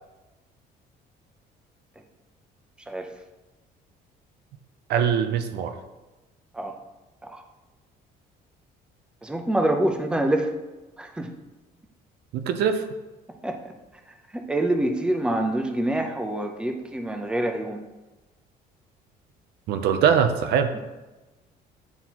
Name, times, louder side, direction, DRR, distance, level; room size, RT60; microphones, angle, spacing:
voice 1, 4.9-5.7 12.3-12.9 19.7-20.7, right 7 dB, 75° right, 8 dB, 0.6 m, -22 dB
voice 2, 9.2-10.5 11.0-11.3 13.4-13.7 14.3-17.8, right 1 dB, 5° right, 5 dB, 0.6 m, -26 dB
9.2 x 3.9 x 2.9 m, 1.1 s
cardioid pair, 110°, 17 cm